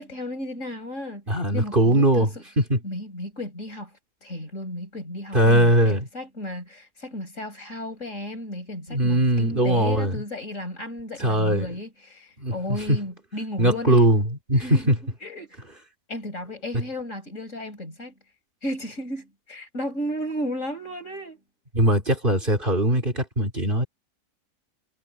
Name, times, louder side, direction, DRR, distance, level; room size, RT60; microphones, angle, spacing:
voice 1, 0.0-1.2 1.5-2.4 2.8-3.9 4.2-14.1 14.6-14.9 15.2-15.6 16.1-18.1 18.6-21.4, left 1 dB, 55° left, 6.2 m, -34 dB
voice 2, 1.3-2.8 5.3-6.1 8.9-10.2 11.2-11.8 12.4-12.5 12.9-13.0 13.6-15.0 16.7-16.8 21.7-23.9, right 1 dB, 35° right, 3.4 m, -20 dB
omnidirectional pair, 1.6 m